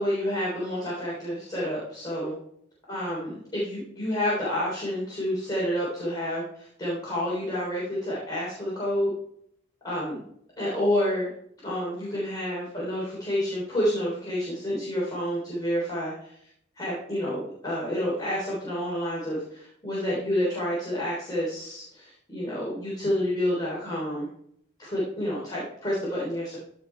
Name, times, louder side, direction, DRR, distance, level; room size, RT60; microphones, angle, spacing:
voice 1, 0.0-2.3 2.9-9.1 9.8-10.2 10.6-11.3 11.6-16.4 16.8-24.3 24.8-26.6, equal, 20° left, -6 dB, 3.5 m, -29 dB
15.0 x 5.3 x 4.5 m, 0.67 s
head